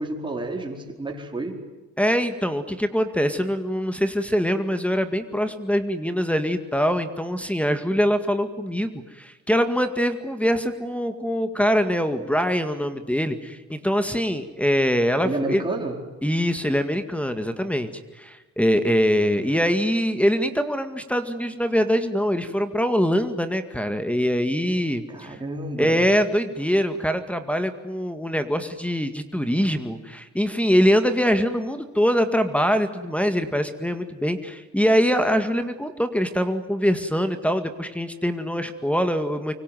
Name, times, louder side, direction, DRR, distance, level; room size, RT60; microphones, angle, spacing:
voice 1, 0.0-1.5 15.2-16.0 25.1-26.0, right 2 dB, 15° right, 0 dB, 4.7 m, -30 dB
voice 2, 2.0-15.6 16.2-17.9 18.2-25.4 25.8-39.5, equal, 5° left, 9 dB, 2.0 m, -23 dB
25.0 x 24.0 x 9.3 m, 1.2 s
cardioid pair, 90°, 30 cm